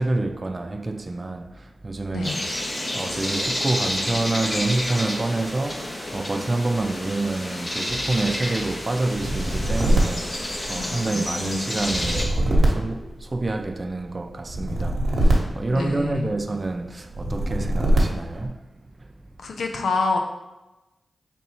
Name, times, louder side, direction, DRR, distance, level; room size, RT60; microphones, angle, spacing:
voice 1, 0.0-18.6 19.0-19.1, right 2 dB, 40° right, 0.3 m, -28 dB
voice 2, 2.1-2.5 10.7-11.6 15.7-16.3 19.4-20.2, left 3 dB, 80° left, 0.5 m, -27 dB
sound 1, 2.2-12.3, left 1 dB, 35° left, 0.9 m, -30 dB
sound 2, 9.1-11.1 11.8-13.7 14.5-16.4 17.1-18.5, right 1 dB, 75° right, 0.9 m, -23 dB
4.2 x 3.4 x 2.9 m
cardioid pair, 40°, 0 cm